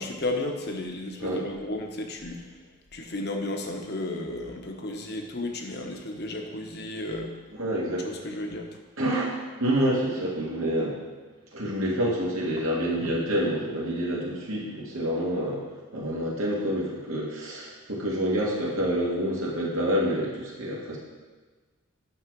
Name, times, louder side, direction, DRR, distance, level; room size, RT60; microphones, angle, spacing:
voice 1, 0.0-7.3 8.0-8.7, left 2 dB, 50° left, 3 dB, 1.1 m, -33 dB
voice 2, 7.6-8.1 9.0-9.3 9.6-11.0 11.5-15.6 15.9-21.0, equal, 75° right, -5 dB, 2.0 m, -27 dB
9.7 x 6.5 x 4.7 m, 1.3 s
head